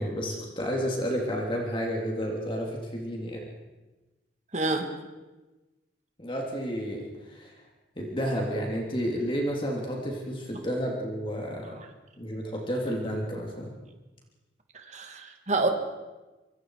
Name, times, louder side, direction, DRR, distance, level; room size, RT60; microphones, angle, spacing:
voice 1, 0.0-3.4 6.2-7.5 8.0-11.7 12.2-13.7, equal, 30° left, -1 dB, 3.2 m, -31 dB
voice 2, 4.5-4.9 11.7-11.8 14.7-15.7, right 2 dB, 40° right, 4 dB, 2.5 m, -28 dB
26.0 x 23.5 x 4.9 m, 1.1 s
head